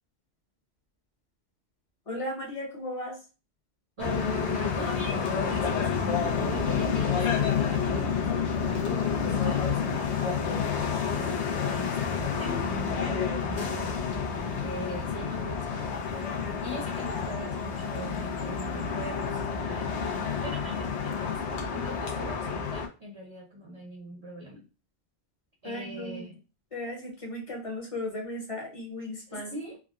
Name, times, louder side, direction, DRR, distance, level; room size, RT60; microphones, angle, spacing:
voice 1, 2.1-3.2 25.6-26.2 26.7-29.5, left 1 dB, 35° left, 0 dB, 0.8 m, -36 dB
sound 1, 4.0-22.9, left 6 dB, 85° left, 1.0 m, -29 dB
voice 2, 4.0-5.9 6.4-10.6 11.1-14.0 14.6-15.9 16.6-19.9 20.4-24.7 25.6-26.4 29.3-29.8, equal, 35° right, 0 dB, 0.6 m, -41 dB
3.4 x 2.1 x 2.4 m, 0.32 s
omnidirectional pair, 1.1 m